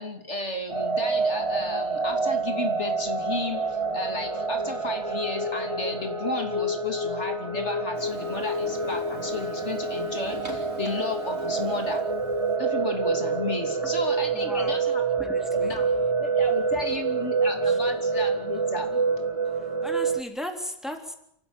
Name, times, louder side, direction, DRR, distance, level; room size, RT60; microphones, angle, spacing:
voice 1, 0.0-12.0 12.6-15.0 15.5-15.8 16.2-19.0, left 2 dB, 60° left, 4 dB, 3.3 m, -33 dB
sound 1, 0.7-20.2, right 4 dB, 25° right, 1.5 m, -27 dB
Printer, 7.9-12.6, right 2 dB, 55° right, 4.1 m, -44 dB
voice 2, 14.3-14.8 15.1-15.9 17.6-17.8 19.5-21.1, equal, ahead, 3 dB, 3.5 m, -37 dB
29.0 x 15.0 x 9.0 m, 0.76 s
omnidirectional pair, 1.3 m